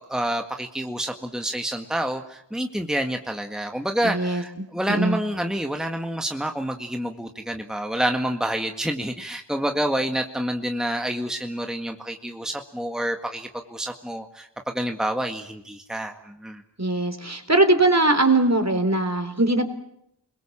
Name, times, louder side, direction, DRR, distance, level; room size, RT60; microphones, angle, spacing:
voice 1, 0.0-16.6, right 1 dB, ahead, 4 dB, 1.8 m, -28 dB
voice 2, 4.0-4.4 4.9-5.2 16.8-19.6, right 2 dB, 40° right, 8 dB, 3.8 m, -20 dB
29.0 x 22.0 x 7.4 m, 0.77 s
wide cardioid pair, 45°, 42 cm